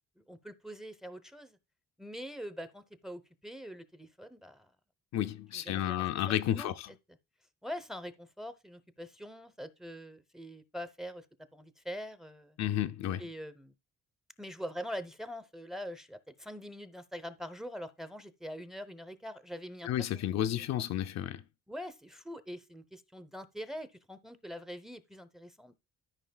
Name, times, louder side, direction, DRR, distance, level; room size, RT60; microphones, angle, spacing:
voice 1, 0.2-1.6 2.0-4.7 5.5-6.1 6.5-6.7 7.6-11.2 11.5-12.6 13.2-13.7 14.4-20.6 21.7-25.7, equal, ahead, 0.7 m, -44 dB
voice 2, 5.1-6.9 12.6-13.3 19.8-21.4, left 11 dB, 60° left, 0.5 m, -32 dB
13.0 x 5.1 x 2.2 m
cardioid pair, 90°, 30 cm